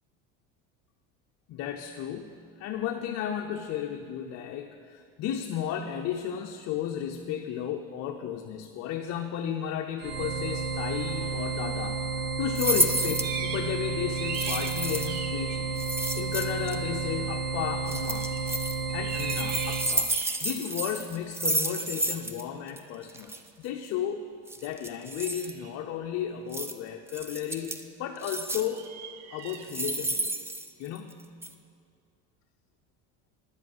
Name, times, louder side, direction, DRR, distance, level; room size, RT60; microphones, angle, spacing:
voice 1, 1.5-12.0 12.4-15.7 16.2-18.3 18.9-20.1 20.4-23.3 23.6-24.3 24.6-28.8 29.3-30.3 30.8-31.3, left 9 dB, 50° left, 4 dB, 0.7 m, -33 dB
sound 1, 10.0-20.0, right 4 dB, 70° right, 1.5 m, -32 dB
sound 2, 12.5-13.3 14.3-15.2 15.8-16.7 17.9-18.7 19.1-22.4 22.7-22.8 23.1-23.4 24.5-25.5 26.5-26.7 27.1-27.8 28.2-28.8 29.5-31.1 31.4-31.5, right 1 dB, 10° right, 0.4 m, -31 dB
sound 3, 13.2-13.8 14.0-15.6 18.1-18.5 18.9-20.6 23.3-23.4 25.4-25.7 28.7-29.7, right 6 dB, 55° right, 0.9 m, -39 dB
10.0 x 7.6 x 7.9 m, 2.3 s
cardioid pair, 130°, 34 cm